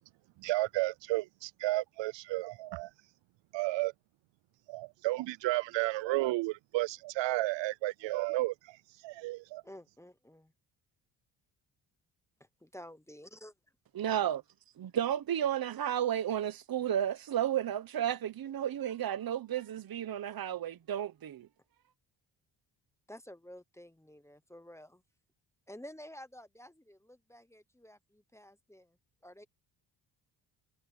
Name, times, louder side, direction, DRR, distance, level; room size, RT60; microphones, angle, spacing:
voice 1, 0.4-2.9 3.5-3.9 4.7-8.8 9.0-9.6, right 19 dB, 90° right, 0.5 m, -32 dB
voice 2, 9.6-10.5 12.6-13.5 23.1-25.0 25.7-29.0 29.2-29.4, equal, 5° left, 0.9 m, -51 dB
voice 3, 13.9-14.4 14.8-21.5, right 10 dB, 55° right, 1.1 m, -32 dB
cardioid pair, 105°, 43 cm